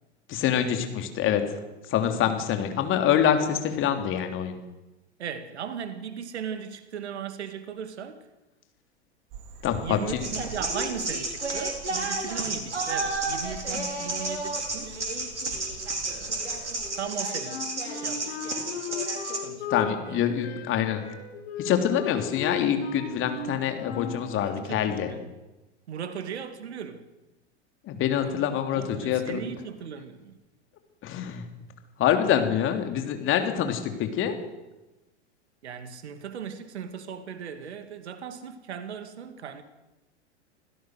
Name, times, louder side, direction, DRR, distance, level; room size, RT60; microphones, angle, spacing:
voice 1, 0.3-1.6 1.9-4.6 9.6-10.3 13.7-13.8 19.7-21.1 21.6-25.1 27.8-29.4 31.0-31.4 32.0-34.4, left 9 dB, 35° left, 3.3 m, -26 dB
voice 2, 5.2-8.2 9.8-15.1 16.0-17.6 17.9-18.5 19.4-19.7 20.1-20.2 24.6-25.3 25.9-27.1 28.2-28.4 28.7-30.4 35.6-39.6, right 7 dB, 70° right, 2.4 m, -38 dB
Frog, 9.3-16.9, right 7 dB, 45° right, 3.6 m, -46 dB
sound 1, 10.2-19.4, right 2 dB, 85° right, 4.6 m, -31 dB
Wind instrument woodwind instrument, 17.4-24.3, left 6 dB, 65° left, 6.0 m, -36 dB
26.5 x 16.5 x 6.5 m
figure-of-eight pair, 95°, 34 cm